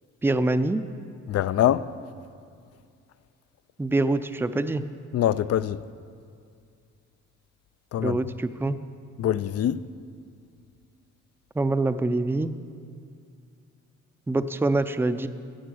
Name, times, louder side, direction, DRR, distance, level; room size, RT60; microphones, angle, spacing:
voice 1, 0.2-0.9 3.8-4.8 8.0-8.8 11.6-12.5 14.3-15.3, right 2 dB, 10° right, 0.5 m, -25 dB
voice 2, 1.3-1.9 5.1-5.8 7.9-8.2 9.2-9.8, left 11 dB, 55° left, 0.5 m, -23 dB
15.5 x 8.2 x 6.3 m
cardioid pair, 90°, 30 cm